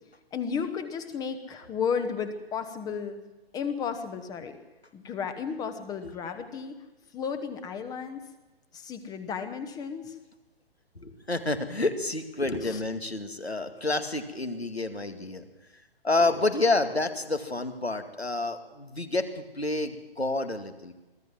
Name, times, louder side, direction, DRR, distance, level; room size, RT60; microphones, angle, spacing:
voice 1, 0.3-3.2 3.5-4.6 4.9-6.8 7.1-8.3 8.7-10.2 12.6-12.8, left 6 dB, 10° left, 9 dB, 1.0 m, -33 dB
voice 2, 11.0-15.5 16.0-20.9, left 2 dB, 90° left, 8 dB, 2.3 m, -29 dB
24.0 x 15.0 x 7.7 m, 1.1 s
figure-of-eight pair, 130°, 31 cm